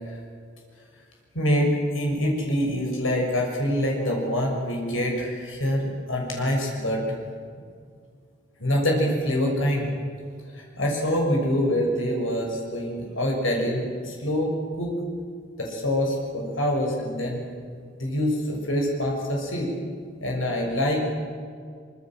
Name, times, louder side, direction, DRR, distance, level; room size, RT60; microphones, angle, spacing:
voice 1, 1.3-7.2 8.6-9.9 10.5-14.5 14.8-15.0 15.6-17.5 18.0-19.7 20.2-21.0, equal, 85° left, 0 dB, 6.6 m, -25 dB
25.5 x 24.5 x 7.7 m, 2.2 s
head